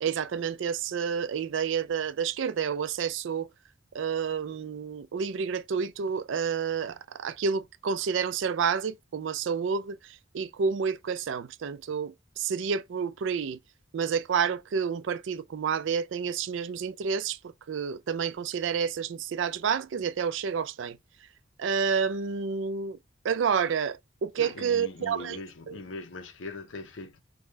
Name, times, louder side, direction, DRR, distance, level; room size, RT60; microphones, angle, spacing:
voice 1, 0.0-3.5 3.9-13.6 13.9-21.0 21.6-23.0 23.2-25.4 25.7-25.8, right 6 dB, 75° right, 0.4 m, -29 dB
voice 2, 24.4-27.2, left 3 dB, 80° left, 0.7 m, -41 dB
5.0 x 2.2 x 3.2 m
head